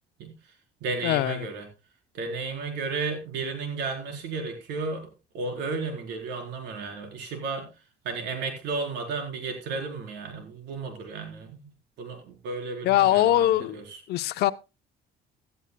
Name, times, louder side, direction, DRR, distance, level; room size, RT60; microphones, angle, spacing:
voice 1, 0.2-0.5 0.8-1.7 2.1-7.7 8.0-11.7 12.0-14.0, right 4 dB, 85° right, 4.2 m, -33 dB
voice 2, 1.0-1.5 12.8-13.8 14.1-14.5, left 14 dB, 75° left, 0.8 m, -22 dB
16.0 x 12.5 x 2.3 m
cardioid pair, 110°, 17 cm